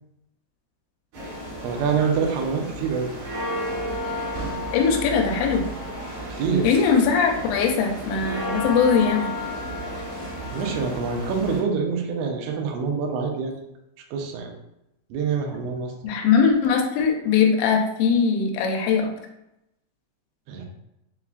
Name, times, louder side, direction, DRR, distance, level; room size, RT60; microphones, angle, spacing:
sound 1, 1.1-11.6, equal, 65° right, 3.3 m, -32 dB
voice 1, 1.6-3.1 6.3-6.7 10.5-13.6 14.1-14.5 15.1-15.9 20.5-20.7, right 5 dB, 85° right, 2 dB, 2.9 m, -25 dB
voice 2, 4.7-5.6 6.6-9.3 10.0-10.1 16.0-19.1, left 6 dB, 90° left, 2 dB, 2.9 m, -21 dB
7.0 x 2.4 x 2.3 m, 0.87 s
omnidirectional pair, 5.2 m